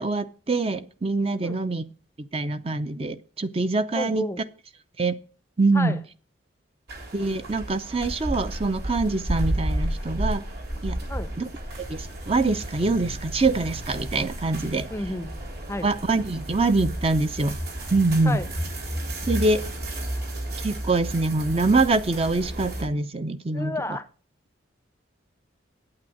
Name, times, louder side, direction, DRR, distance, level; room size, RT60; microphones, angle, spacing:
voice 1, 0.0-1.9 2.2-4.3 5.0-5.2 5.6-6.0 7.1-10.4 10.8-11.0 11.4-11.5 11.8-14.9 15.8-17.6 17.9-18.4 19.3-19.6 20.6-23.8, right 3 dB, 30° right, 0.6 m, -24 dB
voice 2, 4.0-4.5 5.7-6.0 11.1-11.4 14.9-15.4 15.7-15.9 18.3-18.5 23.5-24.1, left 1 dB, 15° left, 0.6 m, -31 dB
sound 1, 6.9-22.9, right 1 dB, 50° right, 3.5 m, -32 dB
8.9 x 8.6 x 7.7 m
head